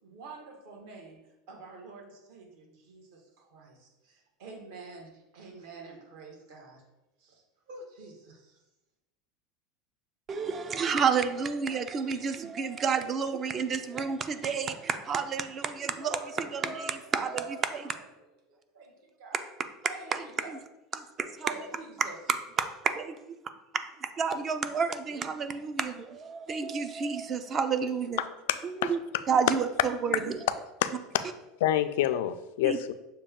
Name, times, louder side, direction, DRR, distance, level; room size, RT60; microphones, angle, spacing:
voice 1, 0.0-6.8 7.2-8.6 15.8-18.0 18.5-19.4 19.8-20.6 21.4-22.2, right 3 dB, 65° right, 0 dB, 1.3 m, -47 dB
voice 2, 10.3-16.2 16.5-16.7 17.1-17.8 20.1-20.6 20.9-21.5 22.6-23.4 24.0-28.2 28.8-29.0 29.3-30.4 32.6-32.8, right 6 dB, 25° right, 9 dB, 0.3 m, -30 dB
voice 3, 28.5-28.9 30.8-30.9 31.6-32.9, left 12 dB, 85° left, 11 dB, 0.3 m, -27 dB
6.4 x 2.2 x 3.6 m, 0.95 s
supercardioid pair, 160°, 0 cm